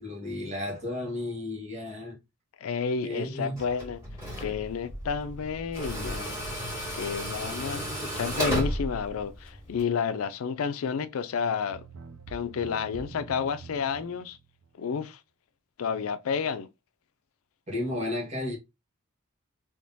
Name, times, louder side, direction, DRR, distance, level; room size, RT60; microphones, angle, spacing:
voice 1, 0.0-2.2 3.0-3.6 17.7-18.6, left 1 dB, 35° right, 1.5 m, -33 dB
voice 2, 2.6-4.0 4.4-6.4 6.9-11.9 12.3-14.4 14.8-15.2 15.8-16.7, left 6 dB, 75° left, 0.4 m, -31 dB
Tools, 3.6-9.8, equal, 15° right, 1.9 m, -34 dB
sound 1, 11.7-14.8, right 4 dB, 75° right, 0.5 m, -46 dB
3.5 x 2.9 x 2.7 m
head